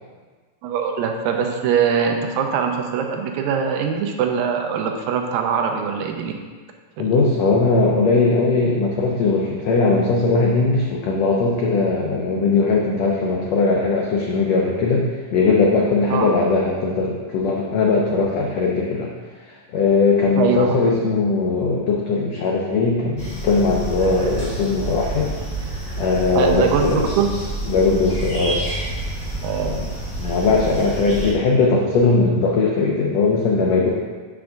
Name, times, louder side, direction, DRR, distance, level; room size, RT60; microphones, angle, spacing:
voice 1, 0.6-6.3 7.0-7.1 16.1-16.3 20.4-20.8 26.4-27.3 29.4-29.7, right 7 dB, 85° right, 3 dB, 2.4 m, -22 dB
voice 2, 7.0-19.1 19.5-25.3 26.0-27.1 27.7-28.6 29.6-29.8 30.2-33.9, left 3 dB, 85° left, -2 dB, 1.5 m, -19 dB
sound 1, 23.2-31.3, right 1 dB, 20° left, 2.1 m, -29 dB
7.4 x 3.4 x 6.4 m, 1.5 s
omnidirectional pair, 4.0 m